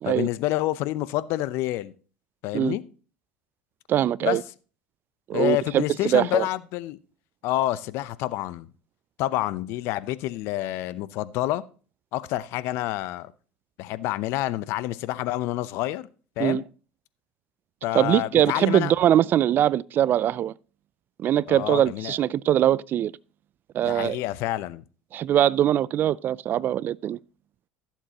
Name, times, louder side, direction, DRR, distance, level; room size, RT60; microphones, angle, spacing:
voice 1, 0.0-1.9 2.4-2.8 4.2-4.4 5.3-7.0 7.4-8.7 9.2-11.6 12.1-13.3 13.8-16.1 16.4-16.6 17.8-18.9 21.5-22.2 23.8-24.8, left 15 dB, 65° left, 0.7 m, -28 dB
voice 2, 3.9-4.4 5.3-6.5 16.4-16.6 17.9-20.5 21.2-23.1 23.7-24.2 25.1-27.2, right 11 dB, 45° right, 0.3 m, -22 dB
15.0 x 7.4 x 2.9 m
hypercardioid pair, 80°, 5 cm